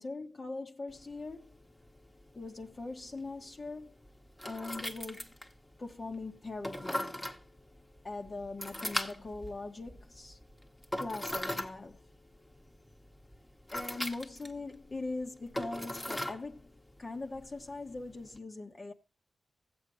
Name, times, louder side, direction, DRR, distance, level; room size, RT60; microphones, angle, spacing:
voice 1, 0.0-1.6 2.3-4.0 4.4-5.4 5.8-7.1 8.0-10.4 11.0-12.0 13.7-18.9, left 3 dB, 40° left, 1.2 m, -41 dB
sound 1, 0.9-18.4, left 1 dB, 15° left, 1.3 m, -42 dB
15.0 x 8.0 x 3.0 m
cardioid pair, 60°, 0 cm